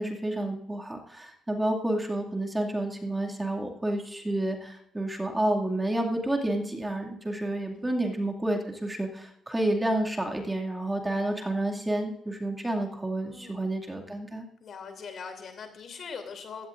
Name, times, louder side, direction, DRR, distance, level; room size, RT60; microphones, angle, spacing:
voice 1, 0.0-14.5, right 1 dB, 15° right, 1 dB, 2.3 m, -30 dB
voice 2, 13.2-13.7 14.6-16.7, left 5 dB, 60° left, 6 dB, 2.9 m, -41 dB
16.5 x 12.5 x 2.6 m, 0.73 s
cardioid pair, 90°, 0 cm